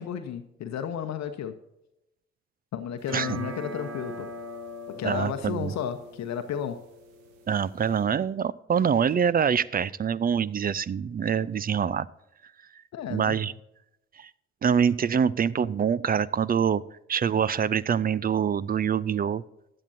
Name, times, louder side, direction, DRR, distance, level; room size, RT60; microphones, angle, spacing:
voice 1, 0.0-1.6 2.7-4.3 4.9-6.8 12.9-13.4, left 8 dB, 55° left, 8 dB, 0.9 m, -33 dB
sound 1, 3.0-8.0, right 1 dB, 75° right, 1.3 m, -41 dB
voice 2, 5.0-5.7 7.5-12.1 13.1-13.5 14.2-14.3 14.6-16.8 17.1-19.4, right 7 dB, 25° right, 21 dB, 0.5 m, -25 dB
15.5 x 9.7 x 2.6 m, 0.89 s
hypercardioid pair, 45°, 33 cm